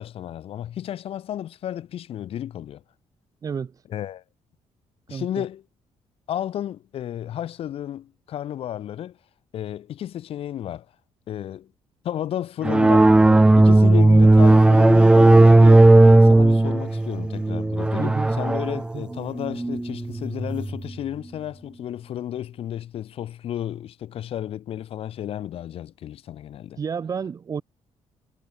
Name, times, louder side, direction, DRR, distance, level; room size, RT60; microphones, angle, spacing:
voice 1, 0.0-2.8 3.9-4.2 5.1-5.6 6.3-9.2 9.5-10.9 11.3-11.7 12.0-26.8, left 11 dB, 55° left, 2.1 m, -32 dB
voice 2, 3.4-3.8 5.1-5.4 18.0-18.3 18.9-19.0 26.8-27.6, right 6 dB, 30° right, 1.7 m, -30 dB
sound 1, 12.6-20.8, right 2 dB, 10° right, 0.4 m, -15 dB
cardioid pair, 170°, 12 cm